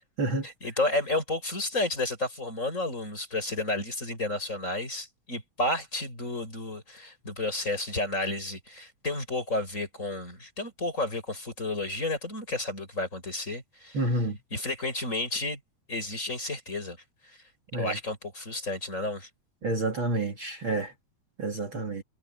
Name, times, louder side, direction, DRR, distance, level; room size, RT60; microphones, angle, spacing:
voice 1, 0.4-15.6 15.9-17.0 17.2-17.4 17.7-19.3, left 2 dB, 25° left, 6.9 m, -32 dB
voice 2, 13.9-14.4 17.7-18.0 19.6-20.9 21.4-22.0, right 2 dB, 45° right, 3.1 m, -29 dB
omnidirectional pair, 3.4 m